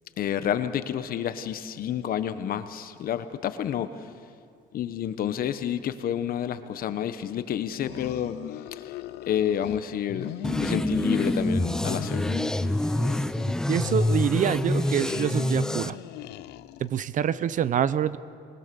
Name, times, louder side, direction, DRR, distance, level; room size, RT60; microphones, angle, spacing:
voice 1, 0.2-3.9 4.7-8.4 8.7-8.9 9.3-10.3 10.6-12.4, left 9 dB, 60° left, 11 dB, 1.1 m, -29 dB
sound 1, 7.7-9.8 10.1-11.6 11.8-13.5 13.8-17.0, left 16 dB, 80° left, 0.6 m, -39 dB
sound 2, 10.4-15.9, left 1 dB, 5° left, 0.5 m, -26 dB
voice 2, 13.7-16.0 16.8-18.2, right 9 dB, 50° right, 17 dB, 0.7 m, -26 dB
22.0 x 20.0 x 7.0 m, 2.3 s
cardioid pair, 110°, 17 cm